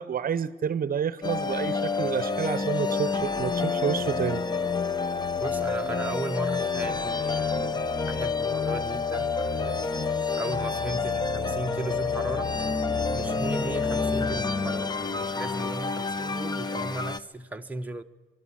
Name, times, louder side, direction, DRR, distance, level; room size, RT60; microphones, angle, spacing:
voice 1, 0.0-4.5, right 7 dB, 45° right, 0.8 m, -29 dB
sound 1, 1.2-17.2, left 4 dB, 20° left, 0.9 m, -28 dB
voice 2, 5.4-7.7 8.0-9.9 10.3-12.5 13.1-18.0, right 2 dB, 10° right, 0.9 m, -36 dB
24.0 x 12.5 x 10.0 m
cardioid pair, 90°, 20 cm